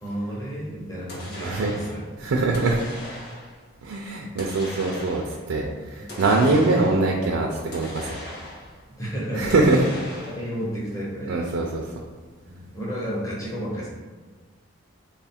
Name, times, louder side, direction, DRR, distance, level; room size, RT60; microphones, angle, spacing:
voice 1, 0.0-2.1 5.9-6.1 8.9-9.7 10.2-11.3 12.4-13.9, equal, 15° left, -6 dB, 0.7 m, -32 dB
sound 1, 1.1-2.1 2.5-3.6 4.4-5.4 6.1-7.1 7.7-8.8 9.5-10.6, left 1 dB, 50° left, 0.7 m, -39 dB
voice 2, 1.4-1.7 2.2-2.8 3.8-5.2 5.5-7.5 7.7-8.2 9.4-9.8 11.3-11.8, right 2 dB, 70° right, 0 dB, 0.4 m, -22 dB
3.5 x 2.4 x 4.2 m, 1.4 s
head